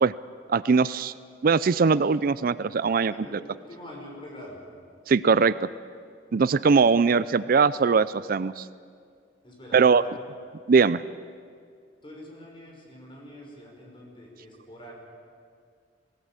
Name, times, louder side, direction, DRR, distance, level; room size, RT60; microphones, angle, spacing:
voice 1, 0.5-1.1 1.4-3.1 5.1-5.7 6.3-8.7 9.7-10.0 10.7-11.0, right 5 dB, 55° right, 17 dB, 0.4 m, -21 dB
voice 2, 3.1-4.6 9.4-10.3 12.0-14.9, left 1 dB, 30° left, -1 dB, 5.5 m, -45 dB
21.5 x 17.5 x 8.9 m, 2.1 s
head